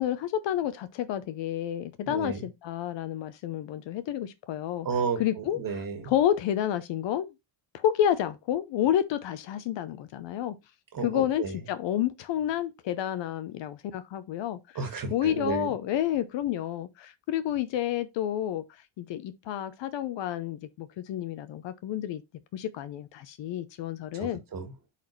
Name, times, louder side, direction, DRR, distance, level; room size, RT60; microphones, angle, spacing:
voice 1, 0.0-4.9 5.2-5.6 6.1-7.3 7.7-10.5 11.0-14.6 15.1-18.6 19.0-22.2 22.5-24.4, left 11 dB, 60° left, 0.8 m, -30 dB
voice 2, 2.1-2.4 4.8-6.1 10.9-11.6 14.8-15.7 24.1-24.7, right 5 dB, 40° right, 1.9 m, -32 dB
9.2 x 4.2 x 3.1 m
cardioid pair, 110°, 50 cm